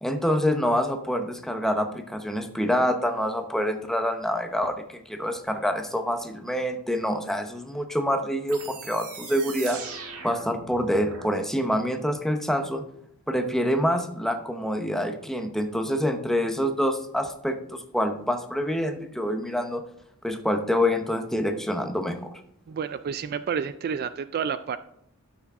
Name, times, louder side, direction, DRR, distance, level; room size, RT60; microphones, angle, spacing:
voice 1, 0.0-9.8 10.2-12.8 13.3-19.8 20.2-22.3, equal, ahead, 6 dB, 0.8 m, -26 dB
sound 1, 8.5-11.3, right 4 dB, 85° right, 1.8 m, -40 dB
voice 2, 22.7-24.8, right 7 dB, 45° right, 13 dB, 0.3 m, -30 dB
12.0 x 5.9 x 3.6 m, 0.74 s
head